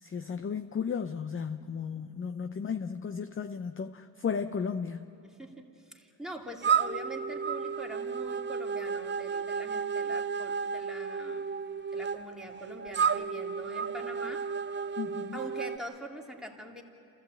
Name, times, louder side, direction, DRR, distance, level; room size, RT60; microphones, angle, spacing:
voice 1, 0.0-5.0 15.0-15.4, left 6 dB, 25° left, 9 dB, 0.6 m, -34 dB
voice 2, 5.2-11.5 11.9-14.5 15.3-16.8, right 1 dB, ahead, -1 dB, 2.5 m, -43 dB
sound 1, 6.6-15.8, right 6 dB, 25° right, 0.5 m, -32 dB
28.0 x 14.5 x 8.3 m, 2.9 s
cardioid pair, 90°, 48 cm